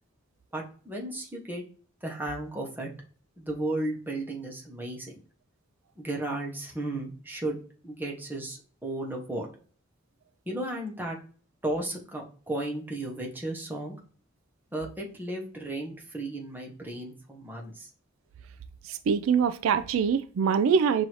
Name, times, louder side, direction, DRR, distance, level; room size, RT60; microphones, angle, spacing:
voice 1, 0.5-1.6 2.0-2.9 3.4-5.2 6.0-9.5 10.5-11.2 11.6-14.0 14.7-17.9, right 1 dB, 10° right, 1.0 m, -34 dB
voice 2, 18.8-21.0, right 6 dB, 75° right, 0.3 m, -24 dB
6.1 x 2.7 x 3.0 m
head